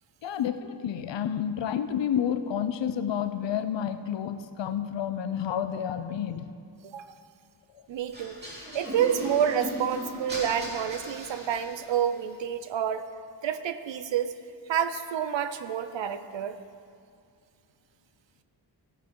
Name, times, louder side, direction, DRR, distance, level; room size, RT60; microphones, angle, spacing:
voice 1, 0.2-6.5, left 9 dB, 85° left, 11 dB, 0.7 m, -30 dB
voice 2, 7.9-8.4 8.7-13.0 13.4-14.3 14.7-16.6, right 9 dB, 80° right, 10 dB, 0.7 m, -28 dB
sound 1, 8.1-12.1, equal, 20° right, 3.1 m, -38 dB
16.5 x 9.3 x 3.8 m, 2.3 s
wide cardioid pair, 165°, 43 cm